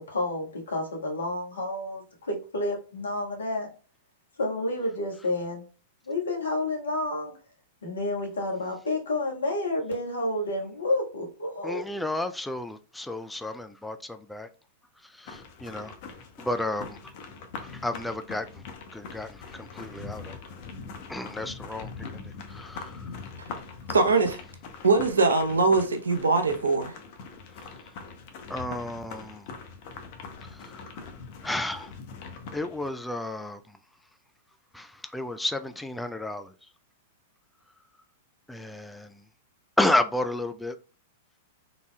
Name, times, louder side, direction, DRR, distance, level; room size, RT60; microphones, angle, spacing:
voice 1, 0.0-2.0 2.3-3.7 4.4-5.6 6.1-7.3 7.8-12.0, left 2 dB, 75° left, 1.4 m, -30 dB
voice 2, 11.6-14.5 15.0-15.9 16.4-17.1 17.6-18.6 18.9-20.4 21.1-23.2 28.5-29.5 30.4-31.0 31.4-31.9 32.5-33.8 34.7-36.7 38.5-39.2 39.8-40.8, left 1 dB, 5° left, 0.3 m, -32 dB
sound 1, 15.3-32.9, left 5 dB, 50° left, 0.8 m, -42 dB
voice 3, 23.9-24.4 24.8-26.9, right 3 dB, 75° right, 0.7 m, -22 dB
4.0 x 3.5 x 2.2 m
figure-of-eight pair, 100°, 0 cm